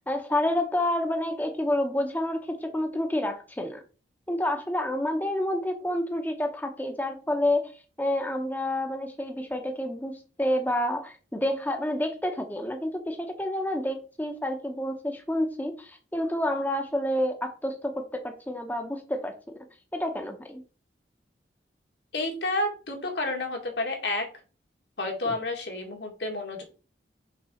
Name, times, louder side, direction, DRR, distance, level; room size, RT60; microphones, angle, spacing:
voice 1, 0.1-3.8 4.3-19.6 19.9-20.6 25.2-25.3, left 1 dB, 10° left, 5 dB, 0.7 m, -29 dB
voice 2, 22.1-24.3 25.0-26.6, left 2 dB, 80° left, 2 dB, 2.0 m, -30 dB
5.7 x 3.7 x 5.6 m, 0.36 s
head